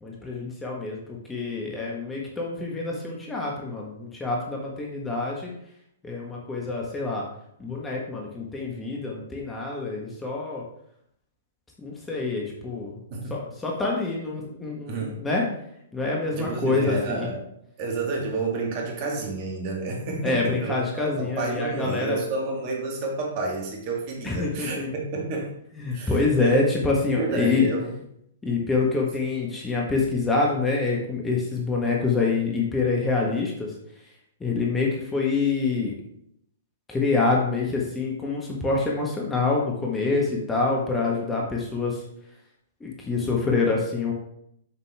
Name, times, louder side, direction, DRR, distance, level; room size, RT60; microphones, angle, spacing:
voice 1, 0.0-5.5 6.0-7.2 7.6-10.6 11.8-12.9 13.3-15.4 15.9-17.3 20.2-22.2 24.2-24.9 25.8-27.7 28.4-33.7 34.4-35.9 36.9-42.0 42.8-44.1, left 3 dB, 10° left, -2 dB, 1.5 m, -26 dB
voice 2, 14.9-15.2 16.3-17.5 17.8-25.5 25.9-26.6 27.1-28.0, right 3 dB, 40° right, -1 dB, 2.1 m, -30 dB
7.1 x 6.6 x 3.5 m, 0.73 s
figure-of-eight pair, 110°, 0 cm